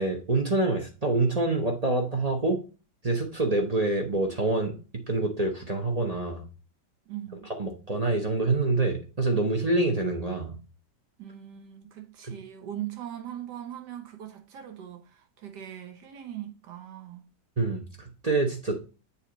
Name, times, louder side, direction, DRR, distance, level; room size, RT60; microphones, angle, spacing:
voice 1, 0.0-2.6 3.0-6.4 7.6-10.6 17.6-18.8, right 2 dB, 30° right, 0.7 m, -26 dB
voice 2, 7.1-7.5 11.2-17.2, right 11 dB, 70° right, 1.6 m, -40 dB
7.3 x 3.4 x 5.0 m
omnidirectional pair, 1.9 m